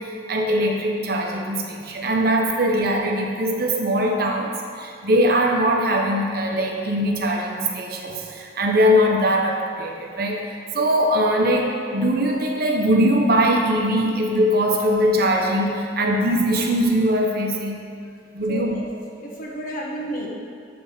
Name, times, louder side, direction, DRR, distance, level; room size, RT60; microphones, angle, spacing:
voice 1, 0.0-10.4 10.7-17.8 18.3-18.8, equal, 55° right, 0 dB, 0.8 m, -21 dB
voice 2, 18.5-18.8 19.1-20.3, right 1 dB, 50° left, -3 dB, 1.1 m, -31 dB
7.9 x 3.4 x 5.6 m, 2.3 s
head